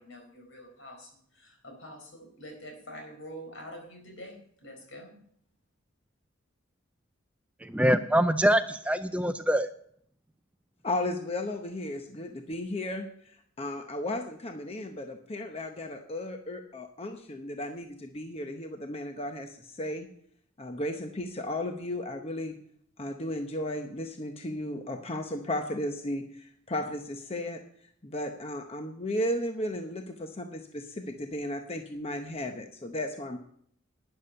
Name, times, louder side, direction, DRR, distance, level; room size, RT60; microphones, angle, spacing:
voice 1, 0.0-5.2, equal, 70° left, 4 dB, 4.4 m, -46 dB
voice 2, 7.6-9.7, equal, 5° right, 10 dB, 0.4 m, -24 dB
voice 3, 10.8-20.1 20.6-22.6 23.0-27.6 28.0-33.4, left 1 dB, 30° left, 5 dB, 0.8 m, -35 dB
12.0 x 10.0 x 5.6 m, 0.65 s
head